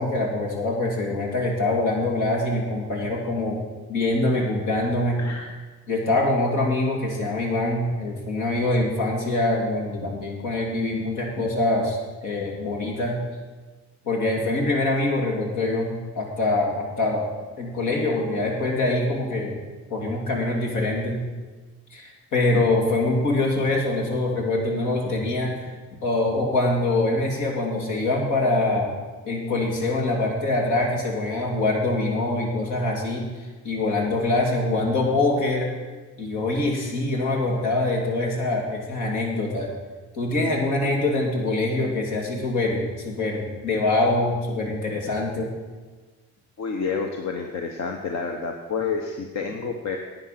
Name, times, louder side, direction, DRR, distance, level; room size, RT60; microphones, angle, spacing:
voice 1, 0.0-3.6 3.9-5.2 5.9-13.2 14.1-17.3 17.6-19.6 19.9-21.2 21.9-25.7 26.0-28.9 29.2-33.2 33.6-35.7 36.2-39.7 40.1-45.5, left 2 dB, 80° left, -1 dB, 3.0 m, -24 dB
voice 2, 5.2-5.5 46.6-50.0, left 5 dB, 65° left, 3 dB, 1.1 m, -29 dB
11.0 x 8.9 x 6.0 m, 1.3 s
cardioid pair, 90°, 30 cm